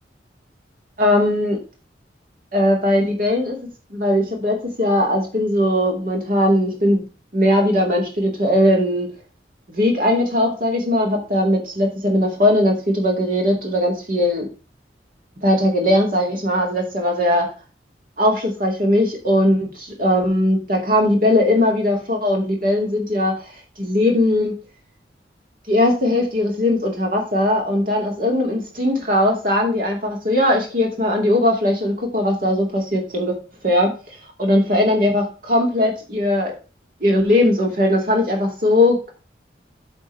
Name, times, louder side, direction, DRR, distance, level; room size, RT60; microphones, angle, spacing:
voice 1, 1.0-1.6 2.5-3.6 3.9-7.1 7.3-9.1 9.7-14.5 15.4-17.5 18.2-23.5 23.8-24.5 25.7-33.4 33.6-33.9 34.4-36.5 37.0-39.1, left 1 dB, 50° right, 1 dB, 2.6 m, -19 dB
8.1 x 3.7 x 5.7 m, 0.33 s
head